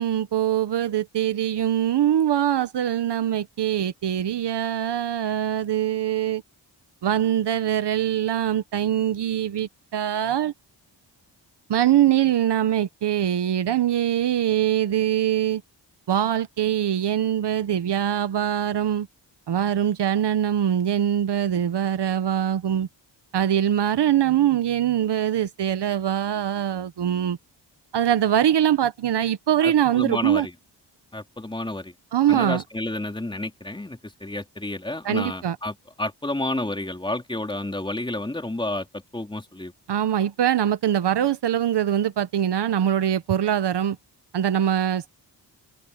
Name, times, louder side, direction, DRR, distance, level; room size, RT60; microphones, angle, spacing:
voice 1, 0.0-6.4 7.0-10.5 11.7-15.6 16.1-19.1 19.5-22.9 23.3-27.4 27.9-30.5 32.1-32.6 35.0-35.6 39.9-44.0 44.3-45.1, right 10 dB, 65° right, 1.0 m, -23 dB
voice 2, 29.6-30.5 31.1-31.9 32.3-39.7, left 1 dB, 10° left, 3.9 m, -30 dB
open air
wide cardioid pair, 165°, 43 cm